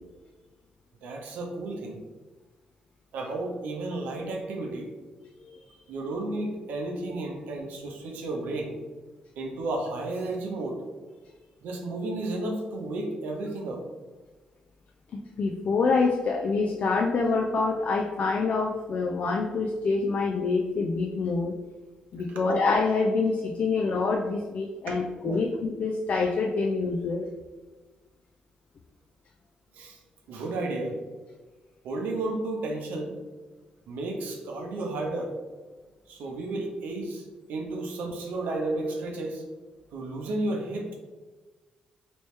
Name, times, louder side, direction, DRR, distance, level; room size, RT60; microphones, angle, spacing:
voice 1, 1.0-2.0 3.1-4.9 5.9-8.8 9.4-10.8 11.6-13.8 22.3-22.5 24.9-25.0 25.3-25.4 29.8-30.0 30.3-31.0 31.8-33.2 33.9-35.3 36.1-37.2 37.5-39.4 39.9-41.0, right 2 dB, 80° right, 2 dB, 0.7 m, -32 dB
voice 2, 15.1-21.5 22.1-27.3, left 4 dB, 60° left, 3 dB, 0.3 m, -26 dB
3.0 x 3.0 x 3.1 m, 1.3 s
supercardioid pair, 65°, 3 cm